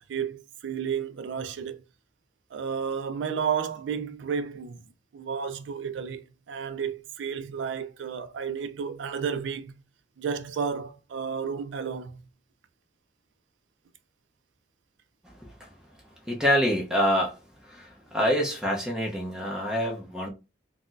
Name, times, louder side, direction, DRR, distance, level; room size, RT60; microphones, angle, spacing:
voice 1, 0.1-1.8 2.5-4.8 5.1-6.2 6.5-9.7 10.2-12.2, right 6 dB, 75° right, 0.4 m, -32 dB
voice 2, 15.2-15.7 16.3-20.3, equal, 5° right, 0.7 m, -27 dB
4.1 x 2.1 x 2.5 m
head